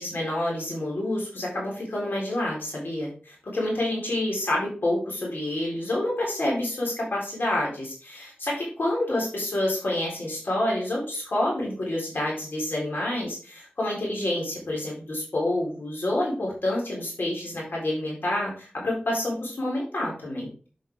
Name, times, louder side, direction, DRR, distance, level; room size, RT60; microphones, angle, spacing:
voice 1, 0.0-20.7, left 1 dB, 90° left, -3 dB, 4.1 m, -28 dB
8.6 x 5.2 x 3.6 m, 0.41 s
cardioid pair, 40°, 4 cm